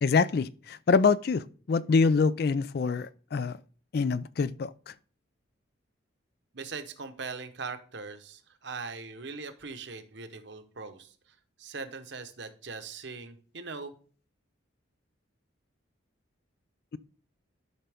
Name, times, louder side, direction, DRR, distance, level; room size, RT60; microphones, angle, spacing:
voice 1, 0.0-3.6 3.9-4.9, left 4 dB, 50° left, 0.3 m, -25 dB
voice 2, 6.5-11.1 11.6-13.9, right 4 dB, 60° right, 0.9 m, -40 dB
12.5 x 5.6 x 3.5 m
head